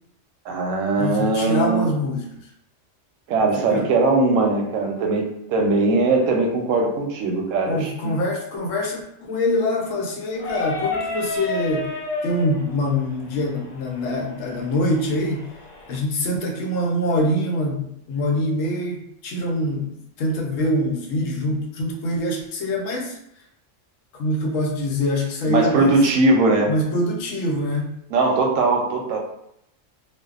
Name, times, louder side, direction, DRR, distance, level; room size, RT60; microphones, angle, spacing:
voice 1, 0.5-1.9 3.3-5.2 5.5-8.2 25.5-26.7 28.1-29.2, right 3 dB, 85° right, 1 dB, 0.9 m, -20 dB
voice 2, 1.0-2.3 3.6-3.9 7.7-11.9 12.2-15.5 15.9-23.2 24.1-26.0 26.7-28.0, left 1 dB, 85° left, 0 dB, 1.0 m, -24 dB
sound 1, 10.3-16.0, left 3 dB, 60° left, 0.4 m, -31 dB
2.6 x 2.1 x 2.3 m, 0.77 s
omnidirectional pair, 1.3 m